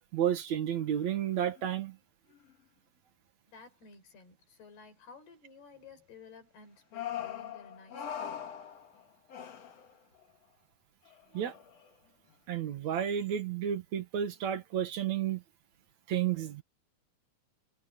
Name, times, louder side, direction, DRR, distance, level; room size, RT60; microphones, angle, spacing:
voice 1, 0.1-2.0 11.3-11.5 12.5-15.4 16.1-16.6, right 9 dB, 55° right, 2.3 m, -31 dB
sound 1, 0.7-1.1 1.4-1.7 2.3-2.5 6.9-10.2 11.1-11.9, left 9 dB, 45° left, 2.6 m, -42 dB
voice 2, 3.5-8.2, left 4 dB, 70° left, 6.6 m, -54 dB
omnidirectional pair, 4.7 m